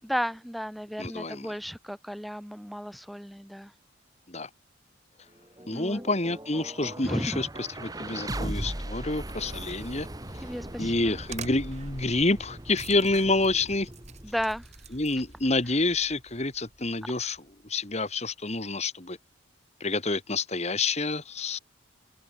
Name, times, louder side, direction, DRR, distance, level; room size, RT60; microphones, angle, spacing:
voice 1, 0.0-3.7 5.7-6.1 7.0-7.4 10.4-11.2 14.2-14.7, equal, ahead, 4.9 m, -34 dB
voice 2, 1.0-1.5 4.3-4.5 5.7-10.1 10.8-13.9 14.9-19.2 19.8-21.6, left 2 dB, 35° left, 2.2 m, -28 dB
sound 1, 5.3-17.4, right 1 dB, 20° right, 2.0 m, -40 dB
sound 2, 9.1-15.5, right 3 dB, 35° right, 2.3 m, -44 dB
open air
head